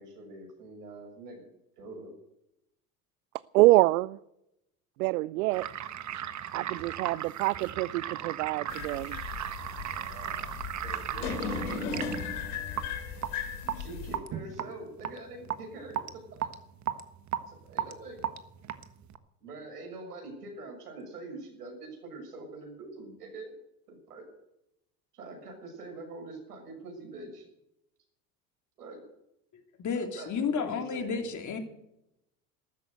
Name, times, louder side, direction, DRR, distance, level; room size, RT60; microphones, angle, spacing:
voice 1, 0.0-1.5 1.8-2.1 9.9-10.5 10.8-12.0 13.7-16.5 17.5-18.2 19.4-23.5 23.9-24.3 25.1-27.5 28.8-29.0 29.9-31.3, right 2 dB, 85° right, 6.6 m, -44 dB
voice 2, 3.5-4.2 5.0-5.6 6.5-9.2, right 20 dB, 70° right, 0.6 m, -25 dB
sound 1, 5.5-19.2, right 10 dB, 40° right, 1.4 m, -36 dB
sound 2, 8.7-14.2, left 5 dB, 75° left, 3.0 m, -37 dB
voice 3, 29.8-31.6, left 5 dB, 40° left, 3.3 m, -31 dB
13.5 x 13.5 x 8.0 m
hypercardioid pair, 75°, 45 cm